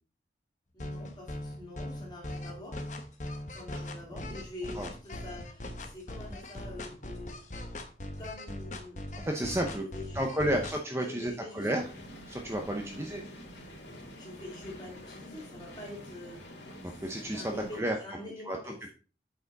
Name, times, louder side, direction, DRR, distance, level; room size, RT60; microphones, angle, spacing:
voice 1, 0.7-2.8 3.5-7.5 8.2-9.0 9.6-10.6 11.0-11.7 12.7-13.2 14.1-16.5 16.8-17.0 17.3-18.9, left 2 dB, 25° left, -2 dB, 2.7 m, -45 dB
sound 1, 0.8-10.8, left 1 dB, 45° left, 1.0 m, -40 dB
voice 2, 9.2-9.8 10.1-11.8 12.3-13.2 16.8-17.4 17.7-18.0 18.5-18.7, right 1 dB, 15° right, 2 dB, 0.7 m, -31 dB
sound 2, 11.7-17.8, equal, 85° left, 1.8 m, -47 dB
8.0 x 4.9 x 4.0 m, 0.38 s
head